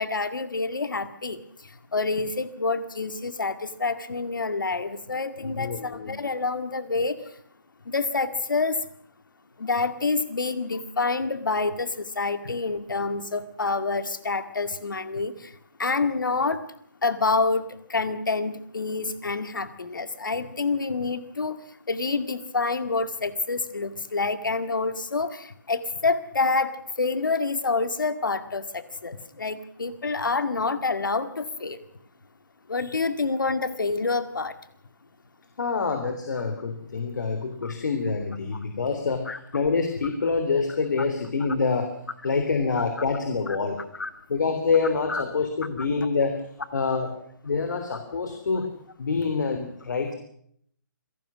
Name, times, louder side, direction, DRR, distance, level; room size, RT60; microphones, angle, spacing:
voice 1, 0.0-7.3 7.8-8.9 9.6-16.6 17.0-31.8 32.7-34.6 37.6-37.7 39.3-39.4 44.0-44.1 45.1-45.2 45.8-45.9, left 3 dB, 80° left, 11 dB, 2.1 m, -27 dB
voice 2, 5.4-6.2 35.6-39.3 39.5-41.9 42.2-43.8 44.3-46.4 46.7-47.2 47.4-48.7 49.0-50.1, left 4 dB, 65° left, 6 dB, 3.5 m, -26 dB
26.5 x 18.5 x 6.3 m, 0.68 s
hypercardioid pair, 150°, 11 cm